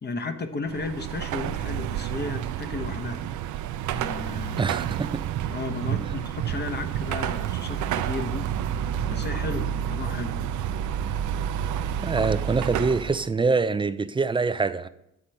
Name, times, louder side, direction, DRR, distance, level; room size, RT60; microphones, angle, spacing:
voice 1, 0.0-3.3 3.9-4.9 5.5-8.5 9.0-10.5, left 3 dB, 35° left, 1.1 m, -34 dB
Car passing by / Traffic noise roadway noise / Engine, 0.7-13.3, right 10 dB, 80° right, 0.5 m, -29 dB
voice 2, 4.6-5.2 12.0-14.9, right 4 dB, 15° right, 0.4 m, -25 dB
9.7 x 4.3 x 7.6 m
cardioid pair, 90°, 30 cm